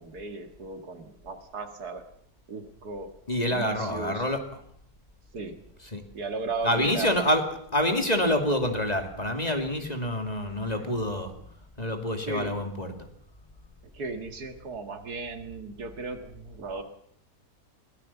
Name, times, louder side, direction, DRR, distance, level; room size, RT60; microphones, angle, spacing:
voice 1, 0.0-2.0 2.5-3.1 3.4-4.3 5.3-5.6 6.1-7.1 10.8-10.9 12.3-12.5 13.9-16.8, right 3 dB, 80° right, 7 dB, 2.5 m, -36 dB
voice 2, 3.3-4.4 5.9-6.0 6.6-7.4 7.7-11.3 11.8-12.9, left 1 dB, 25° left, 5 dB, 2.5 m, -27 dB
22.5 x 17.5 x 7.2 m, 0.66 s
omnidirectional pair, 1.7 m